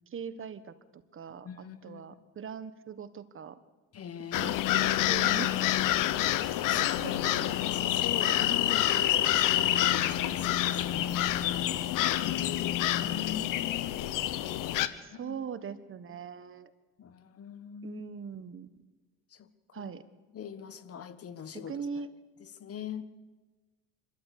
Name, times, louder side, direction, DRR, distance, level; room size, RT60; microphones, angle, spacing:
voice 1, 0.1-3.6 4.4-4.6 5.1-5.5 6.8-7.6 8.2-8.3 15.0-16.7 17.8-18.7 19.7-20.0 21.5-22.1, right 7 dB, 35° right, 13 dB, 1.3 m, -41 dB
voice 2, 1.4-2.2 3.9-5.2 6.1-11.2 12.6-14.1 14.9-15.4 17.0-18.0 19.3-19.9 20.3-21.7 22.4-23.0, left 9 dB, 40° left, 13 dB, 1.4 m, -42 dB
sound 1, 4.3-14.9, left 13 dB, 65° left, 1.1 m, -27 dB
26.0 x 13.0 x 8.4 m, 1.2 s
supercardioid pair, 95°, 35 cm